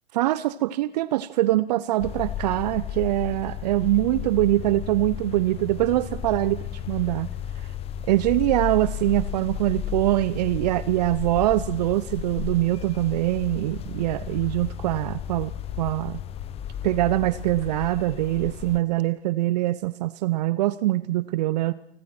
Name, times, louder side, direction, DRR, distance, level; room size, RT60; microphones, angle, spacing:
voice 1, 0.1-7.3 7.6-7.7 8.1-16.2 16.8-21.7, right 16 dB, 40° right, 17 dB, 0.9 m, -23 dB
sound 1, 2.0-18.8, left 9 dB, 20° left, 1.2 m, -34 dB
29.5 x 21.0 x 6.1 m, 0.73 s
figure-of-eight pair, 115°, 31 cm